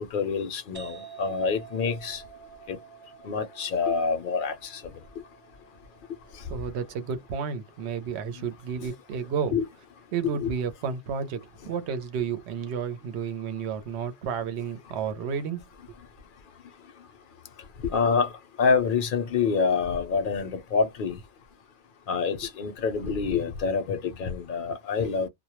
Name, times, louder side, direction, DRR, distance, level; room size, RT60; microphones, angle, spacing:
voice 1, 0.1-2.2 2.7-2.8 3.2-4.8 9.5-9.7 10.2-10.5 17.8-18.3 18.6-21.2 22.1-25.3, left 5 dB, 60° left, 0.6 m, -26 dB
sound 1, 0.7-8.2, right 8 dB, 30° right, 0.4 m, -49 dB
voice 2, 6.5-9.6 10.1-15.6 15.9-16.0, right 6 dB, 80° right, 0.9 m, -31 dB
2.1 x 2.0 x 2.8 m
omnidirectional pair, 1.1 m